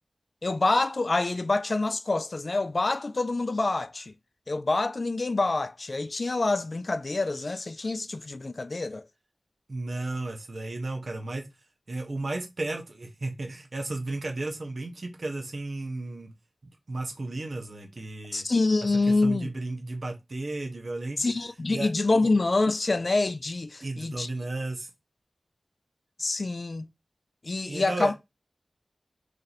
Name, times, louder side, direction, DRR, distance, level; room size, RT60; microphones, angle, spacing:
voice 1, 0.4-4.1 4.5-9.0 18.3-19.5 21.2-24.3 26.2-26.9 27.4-28.1, left 3 dB, 50° left, 0.4 m, -26 dB
voice 2, 9.7-11.5 11.9-16.3 16.9-18.4 19.1-21.2 21.7-21.9 23.8-24.9 27.7-28.1, right 2 dB, 60° right, 1.0 m, -34 dB
3.2 x 2.7 x 4.0 m
wide cardioid pair, 70°, 0 cm